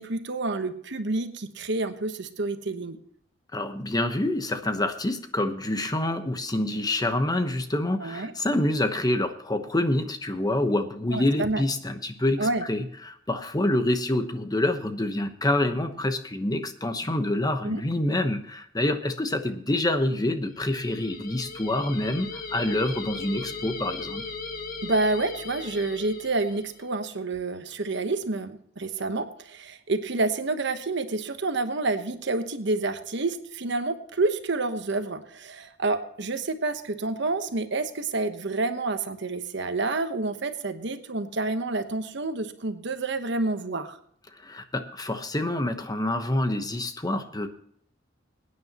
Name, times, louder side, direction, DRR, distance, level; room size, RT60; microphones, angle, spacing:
voice 1, 0.0-3.0 8.0-8.3 11.1-11.6 12.4-12.6 17.6-17.8 24.8-44.0, right 3 dB, 65° right, 8 dB, 1.1 m, -28 dB
voice 2, 3.5-24.2 44.4-47.5, left 1 dB, 20° left, 8 dB, 1.0 m, -27 dB
sound 1, 20.5-26.9, left 4 dB, 50° left, 1.3 m, -38 dB
22.5 x 9.6 x 3.0 m, 0.64 s
head